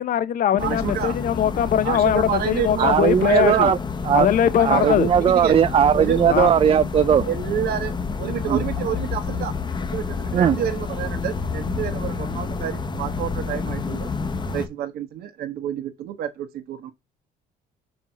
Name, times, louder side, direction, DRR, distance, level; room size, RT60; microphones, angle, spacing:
voice 1, 0.0-3.7 4.1-5.1 6.3-6.5, left 10 dB, 55° left, 0.8 m, -21 dB
sound 1, 0.6-14.7, left 4 dB, 25° left, 1.0 m, -29 dB
voice 2, 0.6-1.1 1.8-3.7 4.6-5.6 5.9-6.2 7.2-9.5 9.9-14.1 14.5-16.9, right 9 dB, 65° right, 1.4 m, -29 dB
voice 3, 2.8-3.8 4.1-4.3 4.6-7.3 8.5-8.6 10.3-10.6, right 8 dB, 35° right, 0.4 m, -18 dB
5.1 x 4.6 x 5.2 m
cardioid pair, 110°, 17 cm